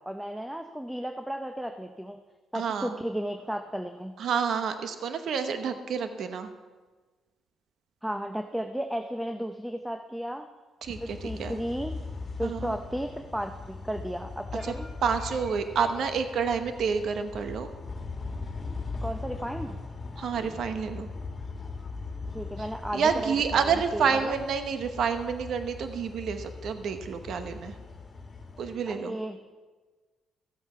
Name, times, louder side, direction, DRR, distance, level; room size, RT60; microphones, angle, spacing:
voice 1, 0.0-2.2 2.5-4.1 8.0-10.5 11.0-11.9 12.4-14.9 19.0-19.8 22.3-24.3 28.9-29.4, equal, 5° right, 7 dB, 0.6 m, -34 dB
voice 2, 2.5-3.0 4.2-6.5 10.8-11.6 12.4-12.7 14.6-14.7 15.0-17.7 20.2-21.1 22.6-22.7 22.9-27.7 28.6-29.2, right 6 dB, 65° right, 8 dB, 0.9 m, -29 dB
sound 1, 10.8-28.8, left 3 dB, 30° left, 1.8 m, -40 dB
14.0 x 7.9 x 5.7 m, 1.3 s
cardioid pair, 90°, 0 cm